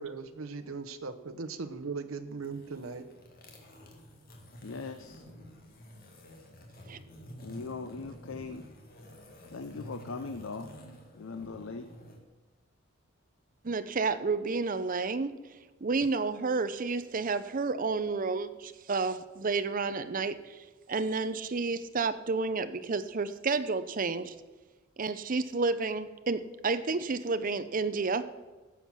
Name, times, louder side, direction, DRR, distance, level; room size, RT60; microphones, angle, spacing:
voice 1, 0.0-3.1, right 4 dB, 80° right, 7 dB, 0.8 m, -39 dB
sound 1, 2.3-12.2, equal, 45° left, 1.9 m, -50 dB
voice 2, 4.6-5.3 7.4-8.7 9.5-10.7 11.1-11.9, left 4 dB, 65° left, 9 dB, 0.6 m, -40 dB
voice 3, 13.6-15.3 15.8-24.3 25.0-28.2, right 4 dB, 40° right, 11 dB, 0.6 m, -31 dB
12.5 x 7.4 x 6.1 m, 1.2 s
head